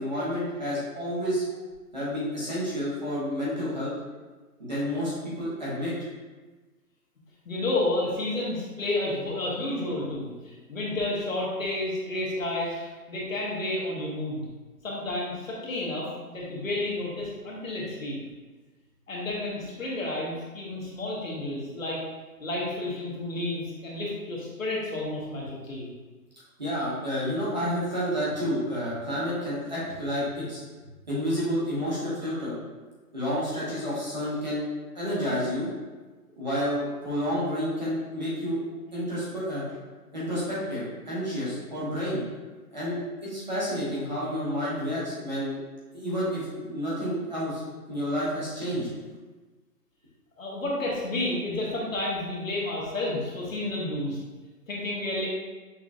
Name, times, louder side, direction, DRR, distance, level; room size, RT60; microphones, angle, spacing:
voice 1, 0.0-1.4 1.9-3.9 4.6-5.9 26.6-30.6 31.1-32.5 33.1-34.7 34.9-35.7 36.3-38.6 38.9-39.6 40.1-42.2 42.7-45.5 45.9-47.6 47.9-48.9, equal, 30° right, -9 dB, 1.0 m, -30 dB
voice 2, 7.4-14.4 14.8-18.2 19.1-22.0 22.4-25.8 50.4-54.2 54.7-55.3, left 2 dB, 55° left, -4 dB, 1.2 m, -31 dB
5.8 x 2.9 x 2.4 m, 1.3 s
hypercardioid pair, 175°, 47 cm